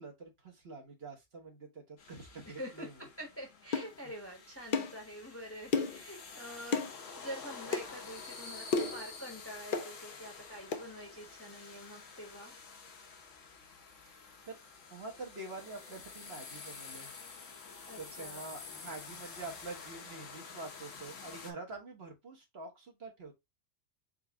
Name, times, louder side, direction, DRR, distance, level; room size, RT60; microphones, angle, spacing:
voice 1, 0.0-3.0 14.1-14.2 14.4-14.6 14.9-17.1 18.0-23.4, right 3 dB, 50° right, 1.5 m, -46 dB
sound 1, 2.0-21.5, left 5 dB, 70° left, 1.3 m, -49 dB
voice 2, 2.6-12.5 17.9-18.5, equal, 10° left, 1.0 m, -46 dB
sound 2, 3.7-3.9 4.7-5.0 5.7-6.0 6.7-6.9 7.7-7.9 8.7-9.0 9.7-9.9 10.7-10.9, left 4 dB, 50° left, 0.7 m, -31 dB
4.6 x 2.8 x 3.4 m
omnidirectional pair, 1.4 m